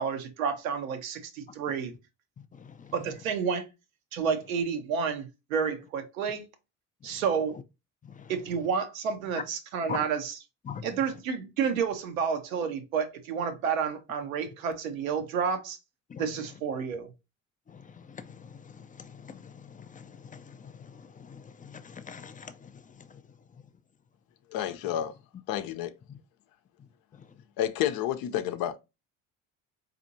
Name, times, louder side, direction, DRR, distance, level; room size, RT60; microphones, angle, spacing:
voice 1, 0.0-1.9 2.9-3.7 4.1-6.5 7.0-7.6 8.3-10.3 10.8-15.8 16.2-17.1, right 6 dB, 85° right, 0.8 m, -30 dB
voice 2, 2.4-3.1 7.0-7.2 7.5-7.6 8.0-8.4 9.9-10.0 10.6-11.2 16.1-16.5 17.7-23.7 26.1-26.2 26.8-27.4, left 6 dB, 20° left, 0.4 m, -45 dB
voice 3, 24.5-25.1 25.5-25.9 27.6-28.8, left 11 dB, 60° left, 0.6 m, -30 dB
4.3 x 2.7 x 2.6 m
hypercardioid pair, 60°, 40 cm